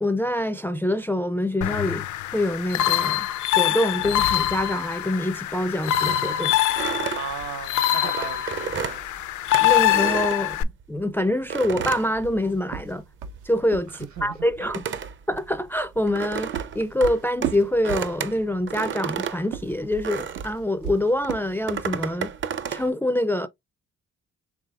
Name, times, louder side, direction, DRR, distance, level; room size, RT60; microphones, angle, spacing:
voice 1, 0.0-2.1 2.3-3.3 3.6-6.6 8.0-8.1 9.6-13.0 13.4-14.8 15.3-22.3 22.7-23.5, left 1 dB, 5° left, 0.4 m, -25 dB
sound 1, 1.6-10.6, left 13 dB, 75° left, 0.5 m, -24 dB
sound 2, 6.7-11.0 11.5-13.0 13.2-20.6 21.2-22.9, right 7 dB, 40° right, 0.6 m, -32 dB
voice 2, 7.1-8.8 14.2-15.0, right 8 dB, 65° right, 1.2 m, -37 dB
sound 3, 11.7-14.4 16.1-18.5 19.4-22.0, right 8 dB, 85° right, 0.7 m, -35 dB
4.8 x 3.5 x 2.3 m
cardioid pair, 90°, 30 cm